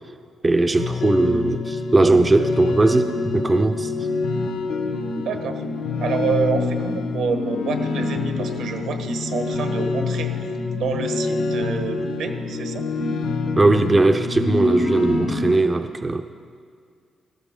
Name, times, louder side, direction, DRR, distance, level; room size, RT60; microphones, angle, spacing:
voice 1, 0.4-3.9 13.6-16.2, right 2 dB, 20° right, 7 dB, 0.4 m, -19 dB
sound 1, 0.8-15.6, left 3 dB, 90° left, 1.0 m, -26 dB
voice 2, 5.1-5.6 6.0-10.3 10.7-12.8, right 5 dB, 80° right, 6 dB, 1.2 m, -27 dB
17.5 x 14.0 x 3.7 m, 2.1 s
cardioid pair, 155°, 0 cm